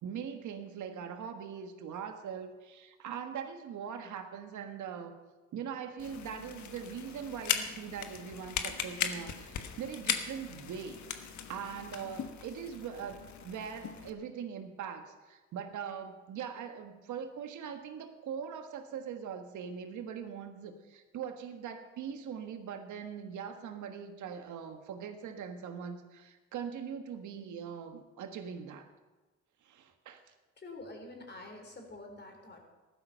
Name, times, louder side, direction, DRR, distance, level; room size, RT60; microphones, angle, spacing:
voice 1, 0.0-5.1 5.5-11.0 11.5-28.9 29.6-30.3, right 7 dB, 75° right, 6 dB, 1.6 m, -41 dB
sound 1, 6.0-14.1, left 8 dB, 70° left, 1.3 m, -38 dB
voice 2, 30.6-32.6, left 2 dB, 35° left, 3 dB, 3.8 m, -47 dB
14.5 x 12.0 x 5.7 m, 1.2 s
cardioid pair, 90°, 30 cm